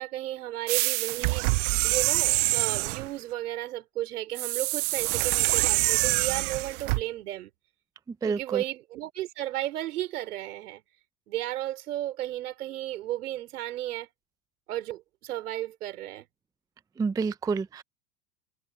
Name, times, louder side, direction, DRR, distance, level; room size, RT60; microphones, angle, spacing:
voice 1, 0.0-1.5 1.8-7.5 8.3-10.8 11.3-14.1 14.7-16.3, right 14 dB, 75° right, 4.8 m, -34 dB
sound 1, 0.7-3.1 4.4-7.0, right 28 dB, 55° right, 0.7 m, -25 dB
voice 2, 8.2-8.6 17.0-17.8, right 5 dB, 10° right, 0.4 m, -28 dB
hypercardioid pair, 100°, 45 cm